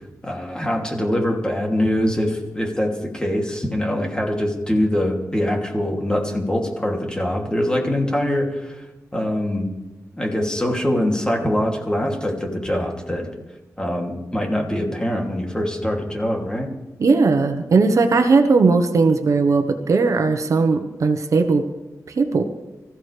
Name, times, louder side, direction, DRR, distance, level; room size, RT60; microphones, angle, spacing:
voice 1, 0.2-8.9 9.1-9.7 10.2-13.3 13.8-16.7, left 1 dB, 15° left, 0 dB, 2.8 m, -23 dB
voice 2, 17.0-21.6 22.1-22.4, right 4 dB, 60° right, 7 dB, 1.1 m, -18 dB
25.0 x 15.0 x 3.4 m, 1.1 s
wide cardioid pair, 100°, 6 cm